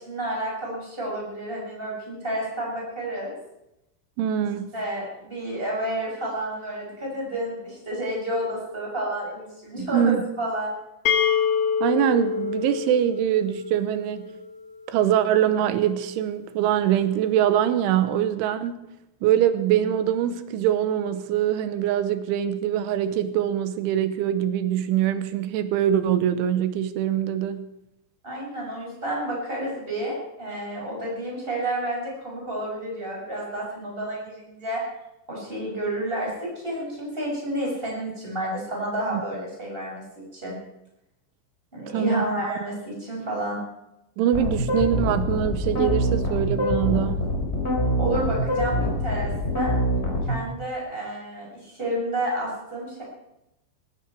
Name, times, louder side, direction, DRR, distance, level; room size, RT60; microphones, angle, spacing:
voice 1, 0.0-3.4 4.7-10.7 28.2-34.8 35.3-40.6 41.7-43.6 48.0-49.3 49.5-49.7 50.2-53.0, right 1 dB, 10° right, -3 dB, 6.7 m, -30 dB
voice 2, 4.2-4.7 9.8-10.2 11.8-14.3 14.9-18.8 19.2-27.7 39.1-39.2 41.9-42.5 44.2-47.2, right 10 dB, 85° right, 11 dB, 3.4 m, -23 dB
sound 1, 11.1-14.8, left 7 dB, 70° left, 2.9 m, -26 dB
sound 2, 44.3-50.4, equal, 15° left, 4.5 m, -24 dB
19.0 x 16.5 x 4.7 m, 0.88 s
omnidirectional pair, 5.5 m